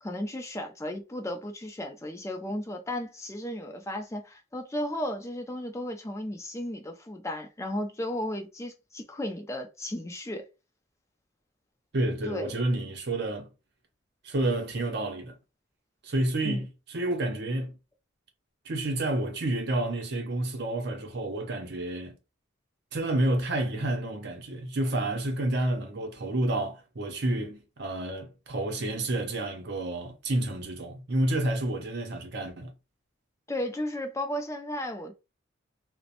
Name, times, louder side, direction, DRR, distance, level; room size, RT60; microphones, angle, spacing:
voice 1, 0.0-10.5 12.3-12.6 16.4-16.6 33.5-35.1, left 1 dB, 15° left, 0.4 m, -34 dB
voice 2, 11.9-13.5 14.2-15.4 16.0-17.8 18.6-22.2 22.9-32.7, right 1 dB, 55° right, 0.6 m, -29 dB
2.8 x 2.1 x 2.5 m
head